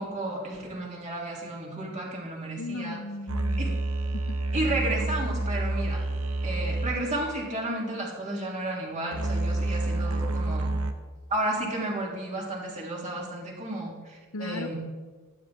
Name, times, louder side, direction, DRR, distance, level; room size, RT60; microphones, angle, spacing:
voice 1, 0.0-3.0 3.6-3.7 4.5-6.0 6.4-10.7 11.3-14.8, right 1 dB, 35° right, -3 dB, 3.4 m, -32 dB
voice 2, 2.6-3.8 14.3-14.7, left 2 dB, 85° left, 9 dB, 0.9 m, -36 dB
sound 1, 3.3-10.9, right 2 dB, 75° right, 1.1 m, -29 dB
15.0 x 13.0 x 3.8 m, 1.4 s
head